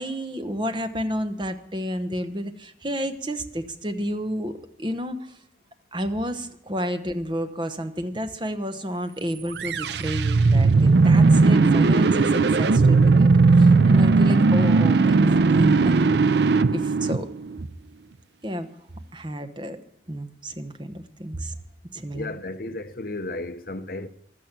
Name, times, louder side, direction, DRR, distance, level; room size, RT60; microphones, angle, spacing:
voice 1, 0.0-4.5 4.8-5.4 5.9-15.9 16.7-17.3 18.4-18.7 19.1-19.8 20.1-21.5 21.9-22.3, equal, 25° right, 1.0 m, -31 dB
sound 1, 9.5-17.7, right 3 dB, 65° right, 0.5 m, -17 dB
voice 2, 22.1-24.1, left 2 dB, 50° left, 0.8 m, -33 dB
15.5 x 12.0 x 6.0 m
head